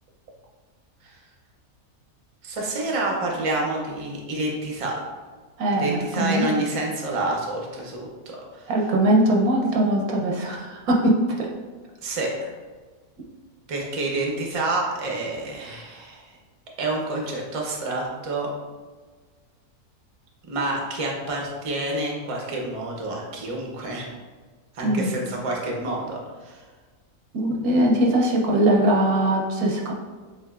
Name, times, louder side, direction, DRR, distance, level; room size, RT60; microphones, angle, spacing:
voice 1, 2.4-5.0 5.8-8.1 8.5-8.7 12.0-12.5 13.7-16.2 16.8-18.5 20.5-24.1 24.7-26.6, right 2 dB, 35° right, -1 dB, 0.5 m, -28 dB
voice 2, 5.6-6.5 8.7-11.5 24.8-25.1 27.3-29.9, right 1 dB, 80° right, -1 dB, 1.2 m, -21 dB
7.2 x 2.6 x 2.4 m, 1.4 s
omnidirectional pair, 1.6 m